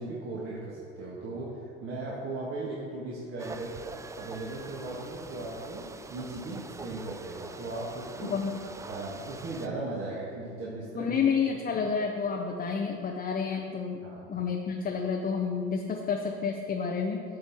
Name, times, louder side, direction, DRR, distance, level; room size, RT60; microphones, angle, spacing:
voice 1, 0.0-3.8 4.2-8.3 8.9-11.2 11.7-11.8 14.0-14.4, right 2 dB, 45° right, -5 dB, 1.5 m, -37 dB
sound 1, 3.4-9.7, right 3 dB, 10° right, 0.3 m, -44 dB
voice 2, 8.2-8.6 11.0-14.0 14.3-17.2, left 6 dB, 30° left, 2 dB, 0.7 m, -30 dB
8.6 x 5.6 x 4.5 m, 2.5 s
hypercardioid pair, 75°, 30 cm